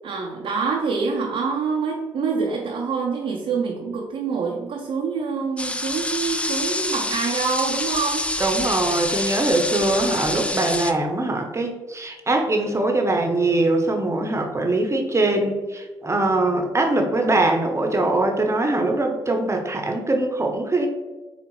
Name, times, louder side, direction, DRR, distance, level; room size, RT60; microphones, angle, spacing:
voice 1, 0.0-8.3, right 5 dB, 60° right, -1 dB, 0.6 m, -26 dB
sound 1, 5.6-10.9, left 1 dB, 10° left, 0.4 m, -26 dB
voice 2, 8.4-20.9, right 2 dB, 25° right, 3 dB, 0.8 m, -22 dB
6.8 x 2.4 x 3.1 m, 1.2 s
hypercardioid pair, 40°, 11 cm